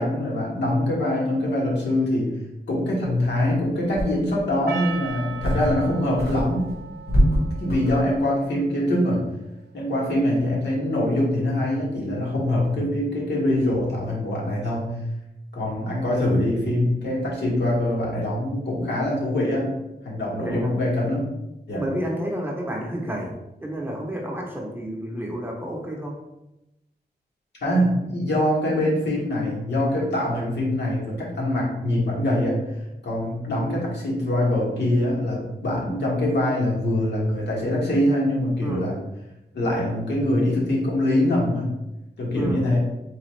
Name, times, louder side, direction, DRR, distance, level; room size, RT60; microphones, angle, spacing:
voice 1, 0.0-2.3 2.7-6.7 7.4-9.3 9.7-15.0 15.5-19.7 20.0-21.2 21.7-21.8 27.6-32.6 33.0-38.9 39.5-41.7 42.2-42.8, left 1 dB, 80° left, -5 dB, 1.5 m, -23 dB
sound 1, 3.3-3.4 3.9-4.5 5.0-5.9 6.2-8.2, equal, 65° left, 1.3 m, -24 dB
Percussion, 4.7-9.2, right 7 dB, 70° right, 0.4 m, -38 dB
voice 2, 20.4-20.7 21.7-23.3 23.6-26.2 38.6-38.9 42.3-42.6, equal, 10° right, -1 dB, 0.7 m, -30 dB
4.0 x 3.5 x 3.2 m, 0.92 s
wide cardioid pair, 155°, 17 cm